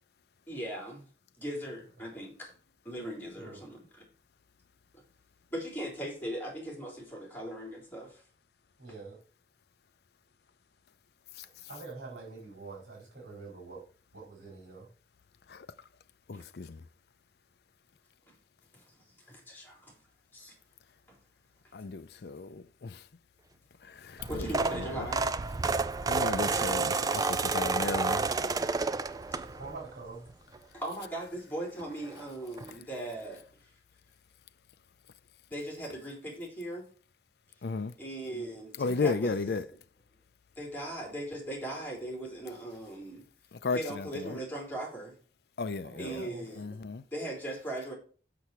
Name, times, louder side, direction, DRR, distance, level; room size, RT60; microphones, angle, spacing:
voice 1, 0.5-1.1 1.4-2.5 2.8-4.1 4.9-5.0 5.5-8.2 16.3-16.4 18.3-18.4 18.7-18.8 19.3-19.9 20.3-20.6 21.1-21.2 24.3-25.2 29.3-29.4 30.7-33.5 35.5-36.8 38.0-39.4 40.6-43.3 43.7-45.2 46.0-46.8 47.1-47.9, right 1 dB, 10° left, 3.7 m, -39 dB
voice 2, 8.8-9.2 11.7-13.8 14.1-14.9 29.5-30.2 45.9-46.4, right 3 dB, 85° right, 4.4 m, -45 dB
voice 3, 16.3-16.8 21.7-23.1 23.8-25.1 26.0-28.3 37.6-37.9 38.8-39.7 43.5-44.4 45.6-46.3 46.6-47.0, left 4 dB, 65° left, 0.5 m, -34 dB
sound 1, 24.2-29.8 30.3-30.6 31.8-31.9 32.1-32.2 32.6-32.7, right 4 dB, 20° right, 0.3 m, -30 dB
6.8 x 6.4 x 5.8 m
head